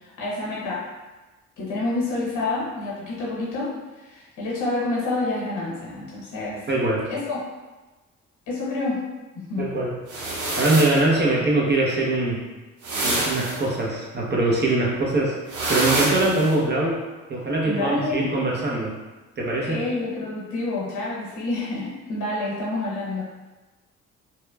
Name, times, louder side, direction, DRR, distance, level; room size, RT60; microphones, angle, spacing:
voice 1, 0.2-0.9 1.6-3.8 4.0-6.6 7.0-7.5 8.5-9.0 9.4-9.7 17.6-18.3 19.6-23.2, left 2 dB, 80° left, -6 dB, 0.8 m, -28 dB
voice 2, 6.7-7.1 9.6-9.9 10.6-12.4 13.0-15.3 15.7-17.0 17.3-18.9 19.4-19.8, right 2 dB, 35° right, -4 dB, 0.7 m, -22 dB
sound 1, 10.1-11.0 12.8-13.6 15.5-16.5, right 2 dB, 75° right, 0.7 m, -26 dB
2.9 x 2.1 x 2.2 m, 1.2 s
cardioid pair, 90°, 30 cm